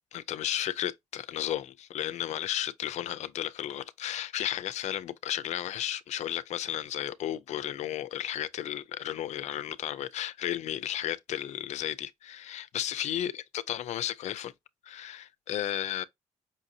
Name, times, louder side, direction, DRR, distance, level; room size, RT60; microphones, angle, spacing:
voice 1, 0.1-14.5 14.8-16.0, left 11 dB, 65° left, 0.4 m, -33 dB
5.4 x 2.6 x 2.7 m
cardioid pair, 160°, 13 cm